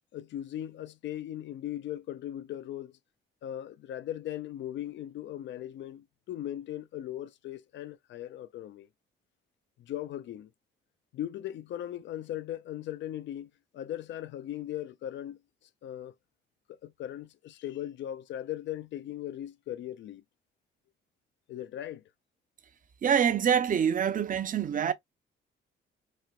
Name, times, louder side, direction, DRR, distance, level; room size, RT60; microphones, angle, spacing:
voice 1, 0.1-3.0 3.4-8.9 9.8-10.5 11.1-16.1 16.7-20.2 21.5-22.0, left 12 dB, 70° left, 0.4 m, -38 dB
voice 2, 23.0-24.9, right 8 dB, 40° right, 0.6 m, -25 dB
4.2 x 2.1 x 2.4 m
cardioid pair, 90°, 20 cm